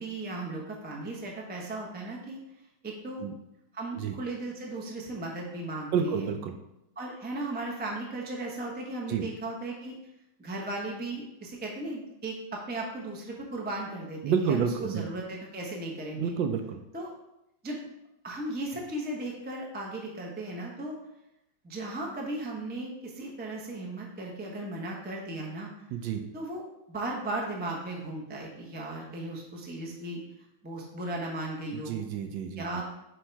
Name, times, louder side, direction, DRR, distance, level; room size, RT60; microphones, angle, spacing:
voice 1, 0.0-2.4 2.8-3.2 3.7-6.3 7.0-9.9 10.4-16.3 16.9-17.1 17.6-17.8 18.2-20.9 21.6-25.9 26.3-26.6 26.9-30.2 30.6-32.0 32.6-32.8, right 2 dB, 15° right, -2 dB, 0.4 m, -36 dB
voice 2, 5.9-6.6 9.1-9.3 14.2-15.0 16.2-16.8 25.9-26.2 31.7-32.8, right 7 dB, 75° right, 6 dB, 1.2 m, -29 dB
7.8 x 3.1 x 4.5 m, 0.86 s
omnidirectional pair, 2.2 m